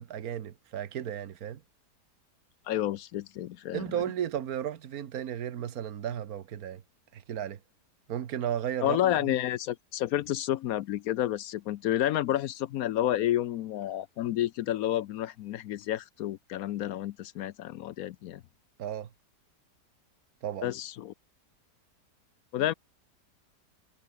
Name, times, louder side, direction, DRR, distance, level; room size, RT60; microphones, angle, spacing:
voice 1, 0.0-1.6 3.7-6.8 7.1-7.6 8.1-9.3 18.8-19.1 20.4-20.7, right 10 dB, 60° right, 1.5 m, -34 dB
voice 2, 2.7-3.8 8.8-18.4 20.6-21.1 22.5-22.7, left 12 dB, 70° left, 0.9 m, -30 dB
omnidirectional pair, 1.9 m